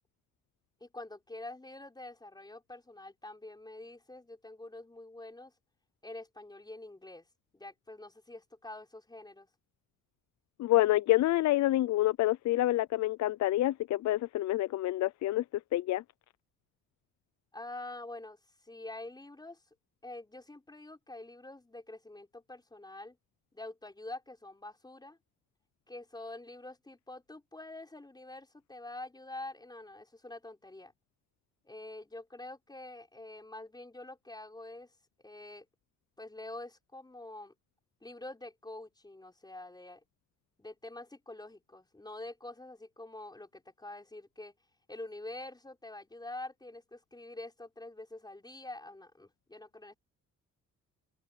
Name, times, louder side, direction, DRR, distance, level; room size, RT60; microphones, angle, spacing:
voice 1, 0.8-5.5 6.0-7.3 7.5-9.5 17.5-19.6 20.0-23.2 23.5-25.2 25.9-30.9 31.6-34.9 35.2-35.7 36.2-37.5 38.0-40.0 40.6-44.5 44.9-49.9, left 2 dB, 15° left, 5.4 m, -46 dB
voice 2, 10.6-15.4 15.7-16.0, left 15 dB, 65° left, 0.5 m, -27 dB
cardioid pair, 90°, 30 cm